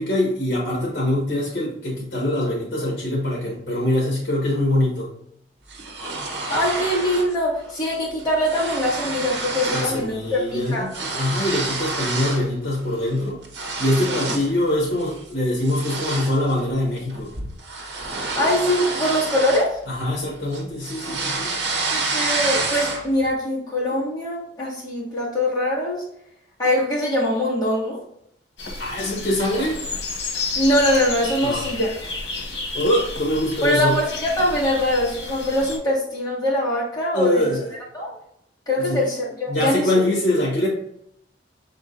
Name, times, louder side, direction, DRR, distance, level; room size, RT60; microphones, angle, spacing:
voice 1, 0.0-5.1 9.7-10.9 11.1-13.4 13.8-17.3 19.9-21.5 28.8-29.8 31.4-31.6 32.7-34.0 37.1-37.7 38.8-39.1 39.5-40.7, left 1 dB, 55° left, -4 dB, 1.4 m, -23 dB
Blowing Another Balloon, 5.7-7.4 7.7-7.9 8.2-10.0 10.3-12.5 12.9-14.6 15.0-15.2 15.6-20.2 20.5-23.2, right 3 dB, 70° right, 0.9 m, -28 dB
voice 2, 6.5-10.9 14.1-14.2 18.4-19.8 21.9-26.0 26.6-28.0 30.5-32.0 33.6-37.5 37.9-38.1 38.7-39.9, left 1 dB, 20° left, -7 dB, 1.8 m, -22 dB
sound 1, 28.6-35.8, left 3 dB, 75° left, 1.3 m, -31 dB
5.5 x 3.7 x 2.5 m, 0.72 s
head